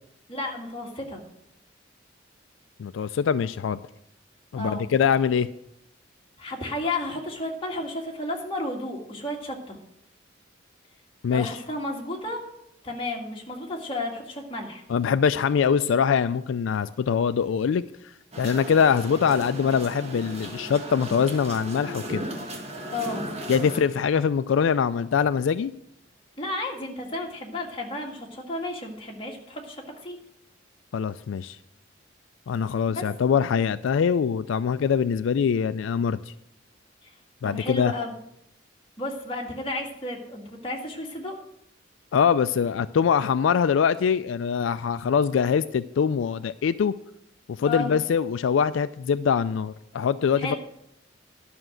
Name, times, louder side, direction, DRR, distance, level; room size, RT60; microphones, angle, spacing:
voice 1, 0.3-1.2 4.6-4.9 6.4-9.8 11.3-12.4 12.8-14.8 22.9-23.3 26.4-30.2 32.9-33.1 37.0-37.1 37.4-38.1 39.0-41.4 47.7-47.9 50.4-50.6, left 2 dB, 30° left, 0 dB, 1.8 m, -32 dB
voice 2, 2.8-3.8 4.5-5.5 11.2-11.5 14.9-17.9 18.4-22.2 23.5-25.7 30.9-31.6 32.5-36.3 37.4-37.9 42.1-46.9 47.5-50.6, left 7 dB, 80° left, 13 dB, 0.3 m, -23 dB
sound 1, 18.3-23.8, equal, 35° right, 1.5 m, -36 dB
11.0 x 6.0 x 7.7 m, 0.77 s
head